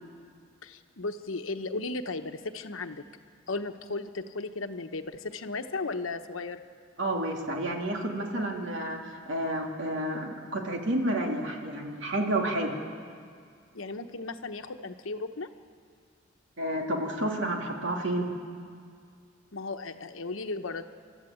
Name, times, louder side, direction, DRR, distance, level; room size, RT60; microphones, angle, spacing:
voice 1, 0.6-3.0 3.5-6.6 13.7-15.5 19.5-20.8, left 3 dB, 85° left, 8 dB, 1.1 m, -35 dB
voice 2, 7.0-12.8 16.6-18.3, right 1 dB, 65° right, 1 dB, 2.7 m, -30 dB
29.0 x 13.0 x 8.7 m, 2.2 s
head